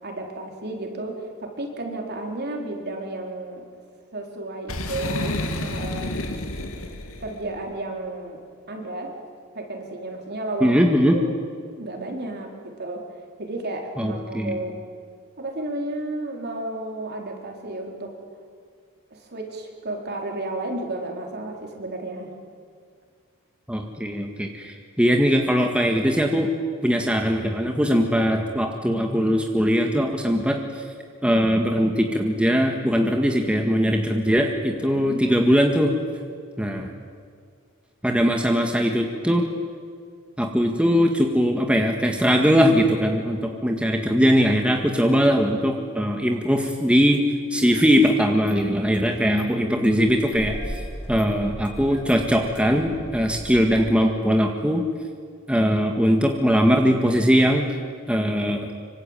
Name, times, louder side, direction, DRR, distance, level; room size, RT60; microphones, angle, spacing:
voice 1, 0.0-3.7 4.1-6.2 7.2-8.4 8.7-9.2 9.5-10.8 11.1-11.3 11.8-13.0 13.4-14.7 15.4-18.2 19.1-22.3 34.9-35.3, right 2 dB, 50° right, 2 dB, 4.4 m, -32 dB
Boom, 4.7-7.4, left 1 dB, 70° left, 2.9 m, -30 dB
voice 2, 10.6-11.2 14.0-14.6 23.7-26.5 26.8-30.8 31.2-35.9 36.6-36.9 38.0-39.4 40.4-47.2 47.5-50.8 51.1-54.8 55.5-57.7 58.1-58.7, equal, 5° right, 2 dB, 1.9 m, -20 dB
Engine starting, 45.2-45.3 46.6-47.3 47.6-47.7 48.0-48.1 48.5-48.6 48.9-49.5 49.8-53.8, equal, 20° left, 6.5 m, -38 dB
25.5 x 25.0 x 9.2 m, 2.1 s
head